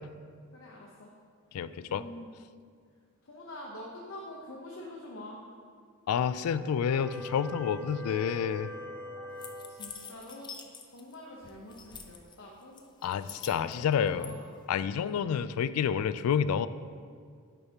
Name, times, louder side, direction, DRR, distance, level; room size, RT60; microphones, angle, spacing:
voice 1, 0.5-1.1 1.9-2.3 3.2-5.4 9.7-10.5 10.9-12.8 13.6-14.5, left 1 dB, 65° left, -2 dB, 0.8 m, -46 dB
voice 2, 1.5-2.0 6.1-8.7 13.0-14.3 14.7-16.7, left 7 dB, 85° left, 15 dB, 0.3 m, -29 dB
sound 1, 6.9-10.1, left 1 dB, 5° left, 1.3 m, -42 dB
sound 2, 9.4-11.1 11.4-12.3 12.8-14.3, left 6 dB, 20° left, 0.5 m, -46 dB
10.5 x 6.5 x 2.9 m, 2.1 s
head